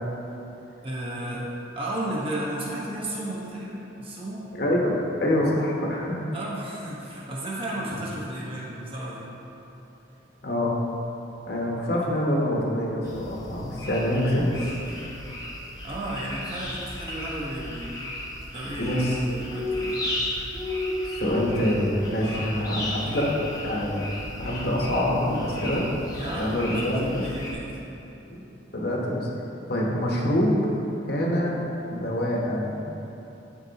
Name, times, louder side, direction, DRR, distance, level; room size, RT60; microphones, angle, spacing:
voice 1, 0.8-1.5 1.7-4.4 6.3-9.3 12.0-12.1 15.8-17.9 18.5-20.0 22.2-23.3 26.1-27.8, right 1 dB, 30° right, -6 dB, 1.3 m, -34 dB
voice 2, 4.5-6.2 10.4-10.7 11.5-14.7 18.8-19.2 21.0-23.3 23.6-25.9 26.3-27.2 28.3-28.4 28.7-29.3 29.7-30.6 31.1-31.6 31.9-32.9, left 1 dB, 55° left, -3 dB, 1.1 m, -25 dB
sound 1, 13.0-27.5, left 1 dB, 20° left, 0.8 m, -34 dB
11.5 x 4.5 x 2.9 m, 3.0 s
head